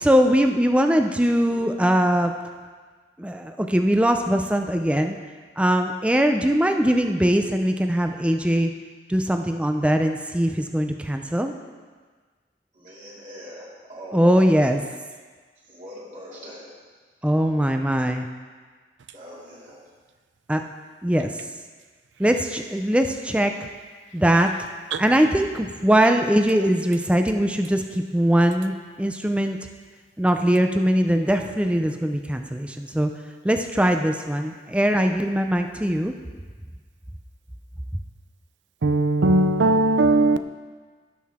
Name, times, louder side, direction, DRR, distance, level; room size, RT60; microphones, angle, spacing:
voice 1, 0.0-2.3 3.2-5.2 5.6-8.7 9.1-11.5 14.1-14.8 17.2-18.3 20.5-20.6 21.0-21.3 22.2-23.5 24.1-24.5 25.0-29.6 30.2-33.1 33.4-36.1, equal, 5° right, 0.5 m, -21 dB
voice 2, 12.8-14.5 15.7-16.7 19.1-19.8, equal, 45° right, 2.7 m, -41 dB
voice 3, 38.8-40.4, right 2 dB, 90° right, 0.5 m, -19 dB
17.0 x 6.6 x 3.6 m
head